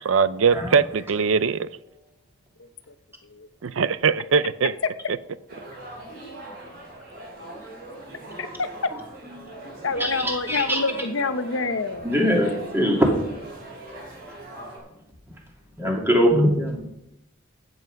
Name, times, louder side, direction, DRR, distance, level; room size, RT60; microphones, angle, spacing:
voice 1, 0.0-1.7 3.6-4.7, right 5 dB, 85° right, 0.5 m, -21 dB
sound 1, 5.5-14.8, right 1 dB, 50° right, 6.0 m, -41 dB
voice 2, 8.4-8.9 9.8-12.2, left 3 dB, 80° left, 0.9 m, -27 dB
voice 3, 10.0-10.8 12.0-13.1 15.8-16.9, equal, 10° right, 2.6 m, -22 dB
15.5 x 8.2 x 5.3 m
head